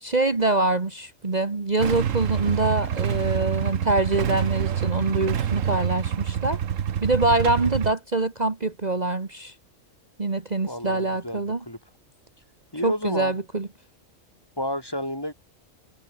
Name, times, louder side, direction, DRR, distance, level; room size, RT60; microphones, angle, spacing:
voice 1, 0.0-6.6 7.0-9.5 10.2-11.6 12.8-13.7, right 2 dB, 30° right, 1.7 m, -24 dB
Motorcycle / Engine starting / Idling, 1.8-7.9, right 9 dB, 75° right, 1.4 m, -26 dB
voice 2, 10.6-11.8 12.7-13.3 14.6-15.3, left 1 dB, 15° left, 3.2 m, -30 dB
omnidirectional pair, 1.4 m